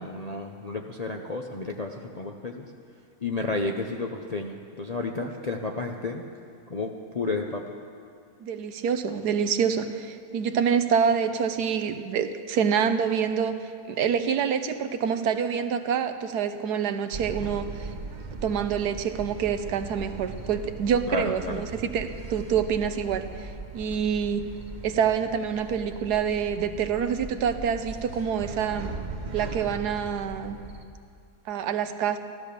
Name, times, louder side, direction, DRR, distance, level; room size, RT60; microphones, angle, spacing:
voice 1, 0.0-2.7 3.2-6.2 6.7-7.6 21.1-21.7, left 3 dB, 45° left, 2 dB, 0.5 m, -32 dB
voice 2, 8.4-13.6 13.9-17.9 18.4-24.4 24.8-28.9 29.3-30.6 31.5-32.2, right 7 dB, 85° right, 9 dB, 1.4 m, -26 dB
sound 1, 17.1-30.9, right 3 dB, 35° right, 1.0 m, -39 dB
15.0 x 12.5 x 6.8 m, 2.4 s
omnidirectional pair, 1.7 m